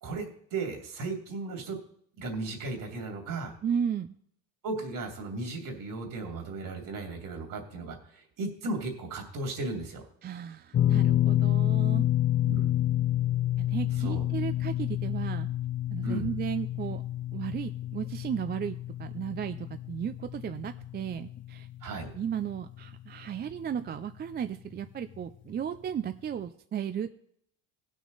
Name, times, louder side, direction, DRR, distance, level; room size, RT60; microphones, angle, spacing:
voice 1, 0.0-1.8 2.2-3.6 4.6-10.1 12.4-12.7 14.0-14.2 16.0-16.3 21.8-22.1, right 2 dB, 50° right, 3 dB, 2.8 m, -35 dB
voice 2, 3.6-4.1 10.2-12.1 13.6-15.5 15.9-17.0 17.3-21.7 22.1-27.2, right 8 dB, 25° right, 10 dB, 0.4 m, -34 dB
sound 1, 10.7-23.0 23.2-23.5 25.2-25.3, left 13 dB, 30° left, 0.5 m, -29 dB
17.5 x 6.3 x 3.9 m, 0.66 s
cardioid pair, 110°, 42 cm